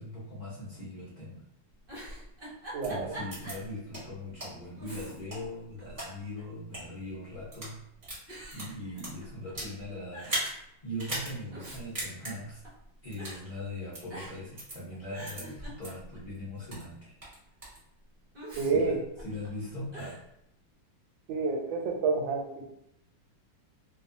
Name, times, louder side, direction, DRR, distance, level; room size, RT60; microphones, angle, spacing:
voice 1, 0.0-1.4 2.9-7.8 8.5-10.4 10.8-12.6 13.0-17.1 18.6-19.0 19.2-20.2, left 1 dB, 65° left, -9 dB, 0.4 m, -40 dB
Giggle, 1.8-3.7 4.1-4.2 4.8-5.5 5.8-6.6 7.4-7.8 8.3-9.5 9.8-9.9 10.1-10.5 11.3-12.8 13.2-13.4 14.1-14.6 14.9-16.3 18.3-19.5 19.9-20.2, right 1 dB, 55° right, 0.6 m, -45 dB
voice 2, 2.7-3.2 18.6-19.0 21.3-22.7, right 4 dB, 90° right, 2 dB, 1.3 m, -29 dB
sound 1, 2.8-2.9 3.3-3.5 3.9-4.0 4.4-4.5 5.1-6.1 6.6-6.8 7.4-7.7 8.0-9.7 10.2-10.5 11.0-11.3 11.6-11.7 11.9-12.3 13.1-13.4 13.9-14.0 14.6-14.8 15.2-15.4 15.8-15.9 16.3-16.9 17.2-17.8, right 1 dB, 25° right, 0.9 m, -37 dB
2.9 x 2.3 x 2.6 m, 0.79 s
omnidirectional pair, 2.0 m